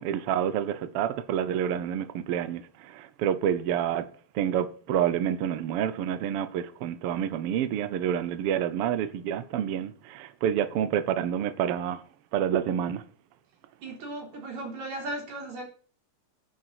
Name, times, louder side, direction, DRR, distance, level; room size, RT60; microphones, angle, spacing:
voice 1, 0.0-4.1 4.3-12.0 12.3-13.0, right 9 dB, 75° right, 1.3 m, -28 dB
voice 2, 13.8-15.6, right 2 dB, 60° right, 5.0 m, -36 dB
11.0 x 7.1 x 6.0 m
omnidirectional pair, 3.7 m